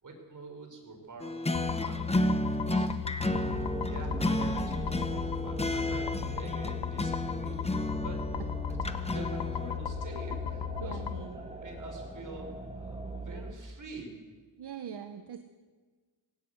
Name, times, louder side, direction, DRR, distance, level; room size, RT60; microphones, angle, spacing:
voice 1, 0.0-2.1 2.5-3.1 3.3-8.4 8.8-14.1, right 2 dB, 45° right, 2 dB, 5.1 m, -46 dB
sound 1, 1.2-9.8, left 1 dB, 15° left, 1.0 m, -32 dB
sound 2, 1.5-11.2, left 11 dB, 85° left, 0.9 m, -36 dB
sound 3, 3.2-13.5, right 3 dB, 15° right, 2.1 m, -40 dB
voice 2, 10.8-11.4 14.6-15.4, right 8 dB, 70° right, 8 dB, 1.2 m, -42 dB
19.0 x 17.5 x 8.1 m, 1.4 s
wide cardioid pair, 135°, 42 cm